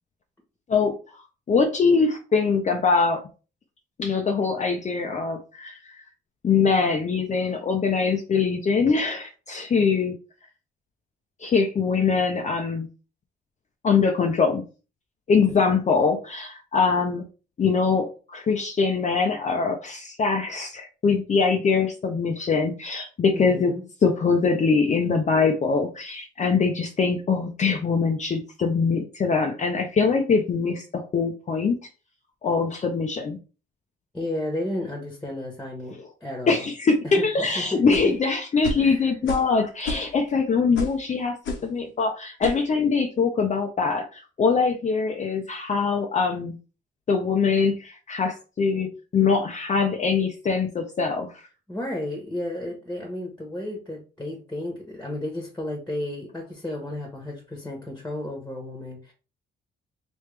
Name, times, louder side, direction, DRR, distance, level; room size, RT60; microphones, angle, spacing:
voice 1, 1.5-3.2 4.0-6.0 6.4-10.1 11.4-12.9 13.8-14.6 15.3-17.2 17.6-23.7 24.0-31.8 32.4-33.4 36.5-41.4 41.6-46.6 47.1-51.5, left 5 dB, 35° left, 3 dB, 0.6 m, -23 dB
voice 2, 23.3-23.8 34.1-36.6 37.0-38.2 38.8-39.1 51.7-59.1, left 1 dB, 10° left, 1 dB, 1.2 m, -33 dB
sound 1, 37.9-38.2 38.6-38.9 39.3-39.5 39.8-40.3 40.8-41.0 41.5-41.7 42.4-42.6, left 2 dB, 75° left, 1.0 m, -31 dB
3.3 x 3.0 x 3.3 m, 0.34 s
cardioid pair, 90°, 20 cm